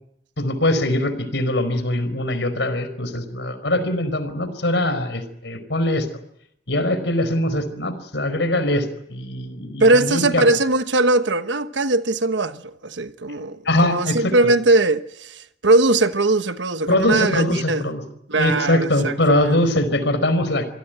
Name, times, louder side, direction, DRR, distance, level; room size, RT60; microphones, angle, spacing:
voice 1, 0.4-6.1 6.7-10.4 13.6-14.3 16.9-18.0 18.3-20.6, left 1 dB, 75° left, 4.6 m, -22 dB
voice 2, 9.8-17.9 18.3-19.6, right 2 dB, 90° right, 1.2 m, -20 dB
27.0 x 17.5 x 9.1 m
head